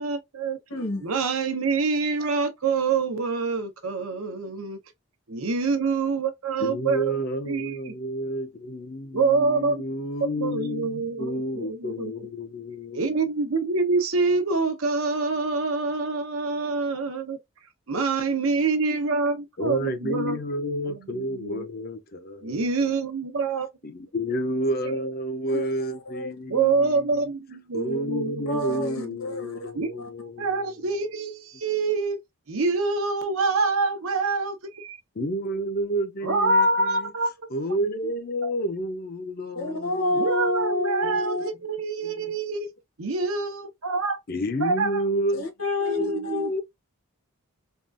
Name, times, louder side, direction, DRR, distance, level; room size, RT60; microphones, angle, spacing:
voice 1, 0.0-0.6 1.0-4.8 5.3-7.0 7.5-7.9 9.1-9.8 10.4-12.1 12.9-17.4 17.9-20.4 20.9-21.6 22.4-23.7 25.5-25.6 26.5-29.1 29.7-29.9 30.4-32.2 32.5-35.3 36.2-37.3 38.4-38.5 40.2-42.7 43.0-44.2 44.6-45.0 45.8-46.5, right 4 dB, 70° right, 0.8 m, -26 dB
voice 2, 0.7-1.0 25.5-26.3 28.5-29.7 39.5-41.5 45.3-46.6, left 2 dB, 70° left, 1.2 m, -28 dB
voice 3, 6.6-13.0 19.6-22.7 23.8-27.2 27.7-30.7 35.2-37.1 37.5-40.2 41.0-41.1 42.0-42.1 44.3-45.4 46.0-46.3, equal, 45° left, 0.6 m, -30 dB
3.6 x 2.4 x 2.4 m
head